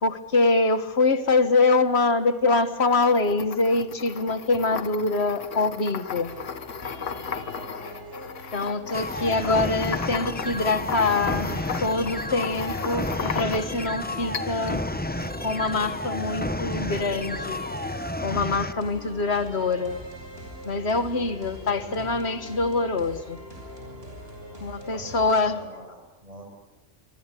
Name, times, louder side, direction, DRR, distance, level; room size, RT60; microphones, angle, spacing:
voice 1, 0.0-6.3 8.5-14.8 15.4-17.6 18.2-20.0 20.7-23.4 24.6-25.6, left 3 dB, 60° left, 1.9 m, -24 dB
sound 1, 2.9-13.9 14.3-14.8, left 6 dB, 85° left, 1.6 m, -35 dB
sound 2, 6.2-25.4, equal, 55° right, 7.0 m, -42 dB
voice 2, 7.4-8.1 21.5-22.2 24.6-26.5, right 1 dB, 30° right, 6.9 m, -46 dB
sound 3, 8.9-18.7, left 1 dB, 10° left, 0.9 m, -31 dB
27.5 x 24.5 x 8.4 m
omnidirectional pair, 1.2 m